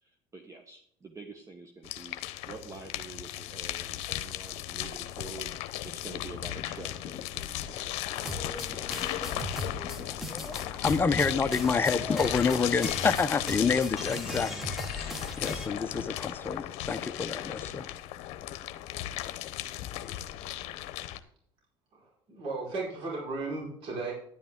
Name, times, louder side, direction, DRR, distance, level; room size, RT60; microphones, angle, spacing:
voice 1, 0.0-2.2 2.4-7.9, right 4 dB, 25° right, 1.1 m, -47 dB
sound 1, 1.8-21.2, left 13 dB, 70° left, 0.8 m, -36 dB
sound 2, 8.2-15.7, left 1 dB, ahead, 1.5 m, -38 dB
voice 2, 10.5-17.9, left 5 dB, 20° left, 0.7 m, -28 dB
voice 3, 21.9-24.1, right 3 dB, 55° right, 5.1 m, -35 dB
10.5 x 9.3 x 3.7 m
supercardioid pair, 100°, 11 cm